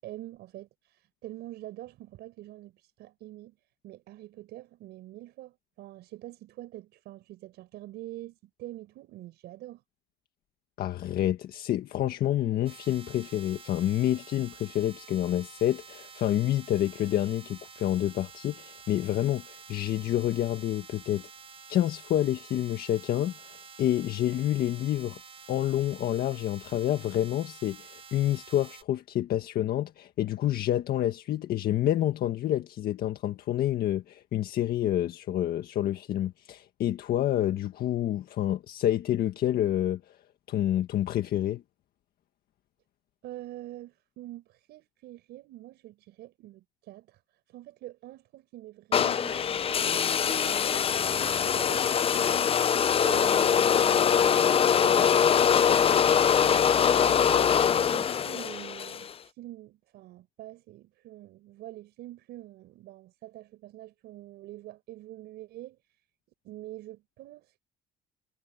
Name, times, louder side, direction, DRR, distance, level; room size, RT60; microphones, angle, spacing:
voice 1, 0.0-3.6 3.8-9.8 43.2-47.2 47.5-51.9 53.0-57.6 57.9-65.8 66.4-67.6, right 15 dB, 80° right, 6.1 m, -45 dB
voice 2, 10.8-21.3 21.7-25.2 25.5-40.0 40.5-41.6, left 12 dB, 65° left, 1.7 m, -28 dB
sound 1, 12.7-28.8, right 5 dB, 35° right, 7.1 m, -49 dB
sound 2, 48.9-59.1, left 8 dB, 35° left, 0.6 m, -23 dB
cardioid pair, 110°, 17 cm